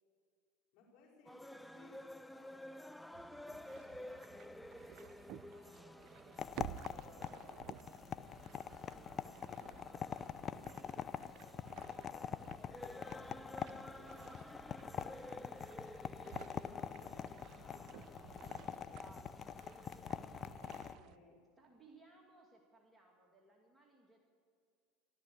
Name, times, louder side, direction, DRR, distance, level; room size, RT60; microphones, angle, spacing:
voice 1, 0.7-3.1 12.6-14.5 16.8-19.1 20.8-21.5, left 4 dB, 60° left, -4 dB, 4.6 m, -64 dB
sound 1, 1.2-20.5, left 1 dB, 5° left, 0.4 m, -54 dB
sound 2, 3.1-21.2, right 13 dB, 55° right, 0.5 m, -56 dB
voice 2, 3.5-11.8 15.0-16.9 19.3-19.7 21.6-24.2, right 2 dB, 15° right, 0 dB, 2.3 m, -65 dB
sound 3, 6.4-21.0, left 8 dB, 35° left, 0.7 m, -45 dB
14.5 x 12.5 x 7.0 m, 2.3 s
hypercardioid pair, 85°, 0 cm